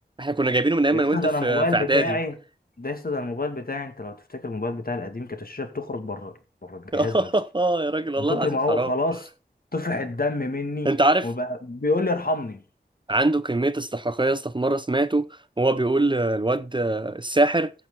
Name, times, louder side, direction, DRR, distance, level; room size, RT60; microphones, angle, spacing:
voice 1, 0.2-2.2 6.9-8.9 10.8-11.3 13.1-15.3 15.6-17.7, right 2 dB, 25° right, 0.6 m, -23 dB
voice 2, 0.9-2.3 2.8-6.3 6.6-7.3 8.2-9.3 9.7-10.9 11.2-12.6, left 2 dB, 55° left, 2.1 m, -28 dB
15.0 x 6.1 x 4.0 m
wide cardioid pair, 50°, 18 cm